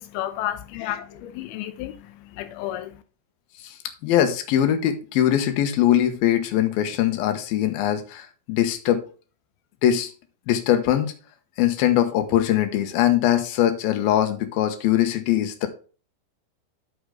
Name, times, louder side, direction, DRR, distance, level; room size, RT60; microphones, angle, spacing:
voice 1, 0.0-3.0, left 13 dB, 85° left, 2.2 m, -32 dB
voice 2, 4.0-9.0 9.8-10.1 10.5-11.1 11.6-15.7, left 11 dB, 65° left, 2.6 m, -21 dB
8.7 x 6.6 x 3.7 m
omnidirectional pair, 5.2 m